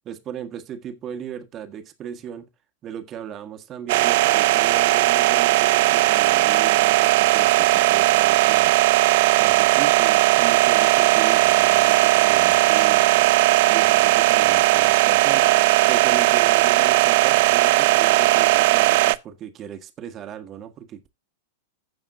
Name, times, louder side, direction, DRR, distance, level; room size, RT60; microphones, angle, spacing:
voice 1, 0.0-2.5 2.8-8.8 9.4-21.1, right 9 dB, 35° right, 1.7 m, -36 dB
sound 1, 3.9-19.1, right 18 dB, 60° right, 0.4 m, -17 dB
15.5 x 6.0 x 2.7 m
hypercardioid pair, 100°, 0 cm